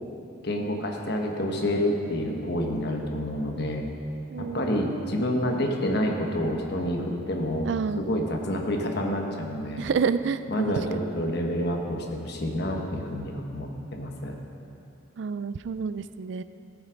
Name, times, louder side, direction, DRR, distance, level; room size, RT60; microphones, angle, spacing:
voice 1, 0.4-3.9 4.4-9.9 10.5-14.3, equal, 55° left, 2 dB, 1.2 m, -28 dB
voice 2, 4.3-4.8 7.6-8.0 9.8-10.8 15.2-16.4, right 5 dB, 60° right, 13 dB, 0.3 m, -29 dB
15.0 x 7.4 x 5.1 m, 2.7 s
head